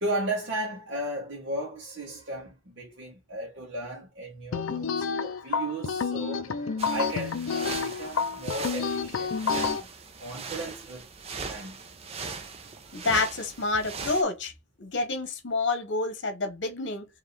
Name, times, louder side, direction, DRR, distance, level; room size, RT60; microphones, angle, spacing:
voice 1, 0.0-9.9 10.2-11.1 11.5-11.8, right 1 dB, 60° right, 1.3 m, -35 dB
sound 1, 4.5-9.8, left 5 dB, 75° left, 0.5 m, -29 dB
sound 2, 6.8-14.2, right 4 dB, 30° right, 0.5 m, -39 dB
voice 2, 12.9-14.5 14.8-17.0, left 3 dB, 55° left, 1.0 m, -28 dB
4.7 x 2.9 x 3.3 m
head